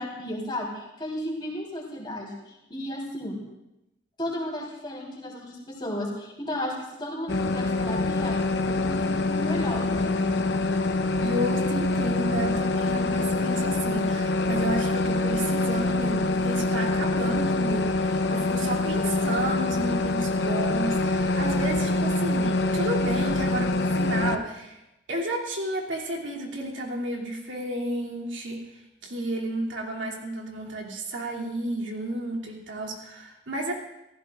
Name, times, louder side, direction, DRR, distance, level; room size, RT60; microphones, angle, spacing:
voice 1, 0.0-3.4 4.2-8.4 8.7-10.3, left 1 dB, 25° left, -2 dB, 3.8 m, -34 dB
sound 1, 7.3-24.4, left 2 dB, 60° left, 0.9 m, -25 dB
voice 2, 11.2-24.8 25.1-28.6 29.0-33.7, right 1 dB, 85° right, -2 dB, 2.8 m, -32 dB
28.5 x 15.0 x 2.5 m, 0.92 s
head